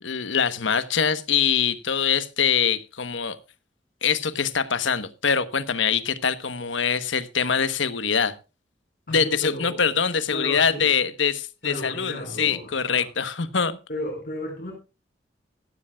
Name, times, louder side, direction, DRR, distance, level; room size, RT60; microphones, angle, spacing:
voice 1, 0.0-3.4 4.0-8.3 9.1-13.8, left 6 dB, 80° left, 1.1 m, -24 dB
voice 2, 9.1-9.9 10.3-10.9 11.6-13.1 13.9-14.7, left 1 dB, 50° left, 4.6 m, -34 dB
15.0 x 14.5 x 2.3 m
head